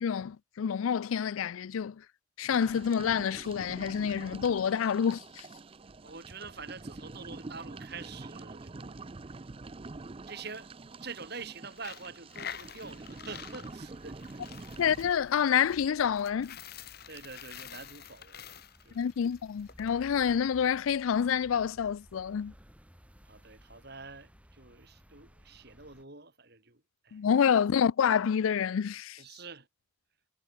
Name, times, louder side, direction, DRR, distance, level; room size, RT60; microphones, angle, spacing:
voice 1, 0.0-2.0 2.4-5.5 14.8-16.6 18.9-22.5 27.1-29.2, left 7 dB, 85° left, 0.4 m, -28 dB
sound 1, 2.5-15.1, right 3 dB, 25° right, 0.5 m, -46 dB
voice 2, 6.0-9.0 9.3-9.4 10.3-10.7 11.0-14.5 17.1-18.6 18.8-19.1 23.2-27.2 29.2-29.7, right 4 dB, 50° right, 4.8 m, -46 dB
Coin (dropping), 11.7-19.9, left 9 dB, 50° left, 1.9 m, -47 dB
sound 2, 12.4-26.1, equal, 5° right, 4.5 m, -58 dB
head